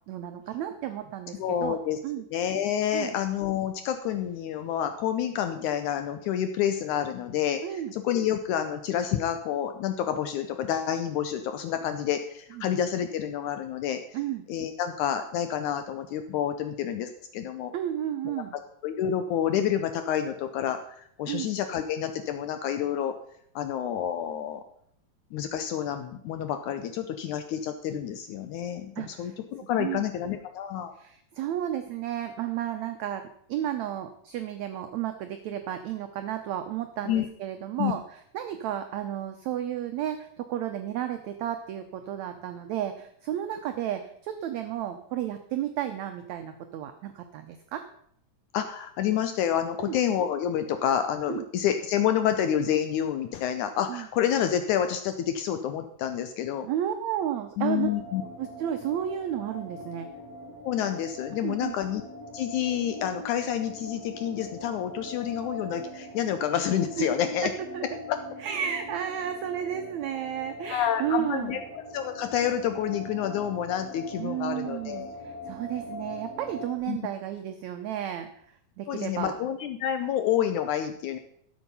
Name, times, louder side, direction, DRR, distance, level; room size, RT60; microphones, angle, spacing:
voice 1, 0.1-1.8 2.0-2.3 2.9-3.1 7.6-7.9 12.5-12.6 14.1-14.5 17.7-18.5 21.2-21.5 29.0-29.3 29.7-30.1 31.0-47.8 49.8-50.0 51.3-51.4 53.9-54.1 56.6-57.9 58.4-60.1 61.4-61.7 67.0-67.1 67.7-67.8 68.4-71.6 74.1-78.3 78.8-79.3, right 10 dB, 85° right, 7 dB, 1.6 m, -32 dB
voice 2, 1.4-2.0 2.3-14.0 14.5-17.7 18.3-18.4 18.8-20.8 21.2-23.1 23.6-24.6 25.3-30.9 37.1-37.3 37.8-37.9 48.5-56.7 57.6-58.2 60.6-62.0 62.3-67.5 68.1-68.2 70.7-71.6 71.9-75.1 76.9-77.0 78.9-81.2, left 9 dB, 75° left, 8 dB, 1.8 m, -28 dB
sound 1, 57.8-76.8, left 1 dB, 20° left, 6.5 m, -42 dB
12.5 x 7.4 x 5.5 m, 0.67 s
omnidirectional pair, 4.1 m